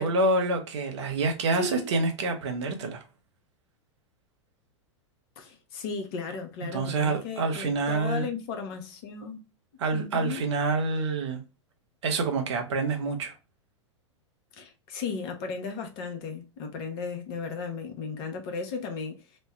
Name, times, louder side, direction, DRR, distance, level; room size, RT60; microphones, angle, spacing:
voice 1, 0.0-3.0 6.7-8.3 9.8-11.4 12.0-13.3, right 3 dB, 65° right, 0.9 m, -27 dB
voice 2, 1.5-2.0 5.4-9.4 9.9-10.4 14.5-19.2, left 4 dB, 50° left, 0.9 m, -35 dB
3.2 x 2.2 x 3.0 m
figure-of-eight pair, 95°, 16 cm